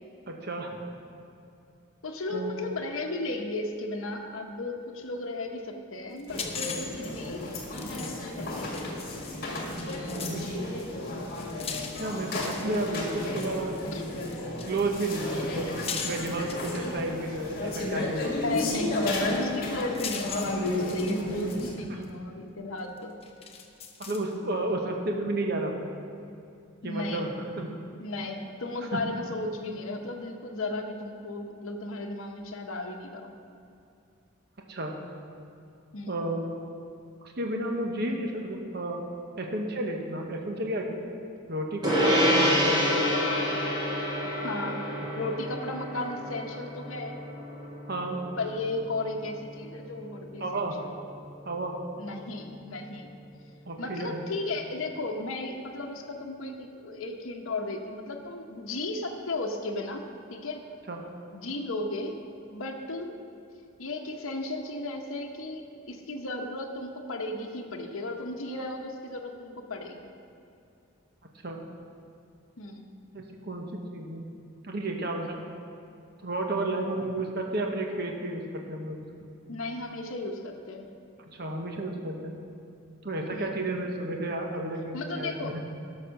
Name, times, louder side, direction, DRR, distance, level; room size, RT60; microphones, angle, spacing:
voice 1, 0.3-0.8 2.3-2.6 10.1-10.5 12.0-13.8 14.7-15.7 16.0-18.7 21.9-22.1 24.0-25.9 26.8-27.7 28.9-29.0 34.7-34.9 36.1-36.6 37.2-39.0 39.4-41.0 41.5-42.9 47.9-48.2 50.4-50.7 51.4-51.8 53.7-54.2 60.9-61.0 71.4-71.6 73.1-74.3 74.6-75.4 76.2-79.1 81.3-82.3 83.0-85.6, right 2 dB, 50° right, 2 dB, 1.0 m, -32 dB
voice 2, 2.0-7.5 7.8-9.2 12.9-13.1 13.9-14.0 18.3-23.1 26.8-27.3 28.0-33.3 35.9-36.2 44.2-44.9 45.1-47.2 48.4-51.0 52.0-53.1 53.8-60.0 60.3-60.6 61.3-62.2 62.5-63.2 63.8-70.1 72.6-72.9 79.5-80.9 83.3-83.5 84.9-85.5, left 2 dB, 75° left, 2 dB, 0.9 m, -35 dB
sound 1, 6.2-10.4 10.8-17.3 18.5-18.6 19.0-21.7 22.0-22.1 23.0-24.3, left 6 dB, 30° left, 0.7 m, -40 dB
sound 2, 6.3-21.7, left 1 dB, 45° left, 1.8 m, -33 dB
Gong, 41.8-51.5, equal, 20° right, 2.0 m, -29 dB
11.5 x 6.3 x 6.4 m, 2.6 s
head